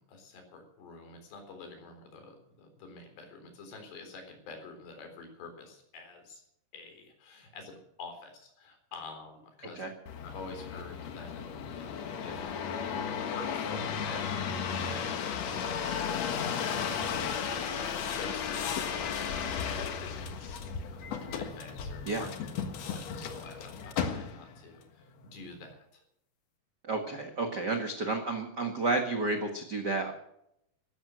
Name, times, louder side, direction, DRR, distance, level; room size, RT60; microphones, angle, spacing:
voice 1, 0.0-6.4 6.7-9.9 10.2-12.8 13.1-19.9 20.1-22.3 22.7-26.0, left 3 dB, 75° left, 5 dB, 6.0 m, -48 dB
sound 1, 10.1-24.6 25.2-25.7, left 7 dB, 60° left, 1.8 m, -34 dB
voice 2, 26.8-30.1, right 3 dB, 65° right, 4 dB, 1.0 m, -31 dB
14.5 x 14.0 x 6.3 m, 0.76 s
omnidirectional pair, 4.9 m